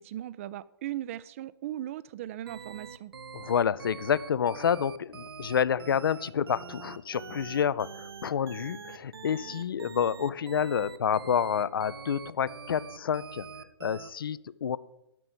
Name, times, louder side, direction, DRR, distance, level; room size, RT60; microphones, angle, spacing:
voice 1, 0.0-3.1, right 13 dB, 30° right, 19 dB, 0.4 m, -38 dB
sound 1, 2.5-14.1, right 5 dB, 60° right, 0.8 m, -44 dB
voice 2, 3.3-13.5 13.8-14.8, left 8 dB, 55° left, 19 dB, 0.4 m, -29 dB
12.0 x 4.9 x 7.6 m, 0.89 s
figure-of-eight pair, 120°, 14 cm